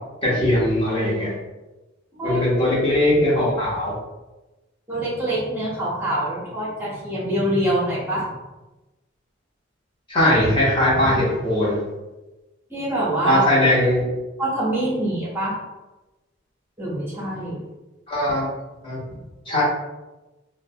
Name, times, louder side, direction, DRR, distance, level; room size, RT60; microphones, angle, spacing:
voice 1, 0.2-1.3 2.2-3.9 10.1-11.8 13.2-14.0 18.1-18.5 18.8-19.0 19.5-19.6, left 1 dB, 25° left, -7 dB, 0.8 m, -20 dB
voice 2, 4.9-8.3 12.7-13.4 14.4-15.6 16.8-17.6, right 1 dB, 10° right, -8 dB, 0.7 m, -25 dB
2.6 x 2.1 x 2.6 m, 1.1 s
head